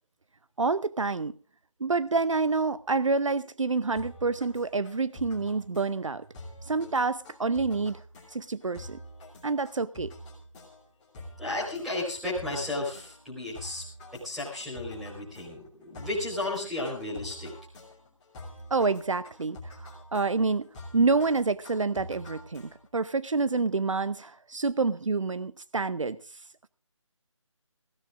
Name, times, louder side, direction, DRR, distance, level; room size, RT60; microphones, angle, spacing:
voice 1, 0.6-1.3 1.8-6.3 6.7-8.0 8.3-9.0 9.4-10.1 18.7-19.6 20.1-20.7 20.9-26.2, right 4 dB, 70° right, 16 dB, 0.6 m, -27 dB
sound 1, 3.9-23.0, left 1 dB, 15° left, 3.1 m, -46 dB
voice 2, 11.4-13.8 14.2-17.5, left 2 dB, ahead, -7 dB, 4.3 m, -33 dB
21.0 x 16.0 x 2.5 m, 0.35 s
figure-of-eight pair, 155°, 17 cm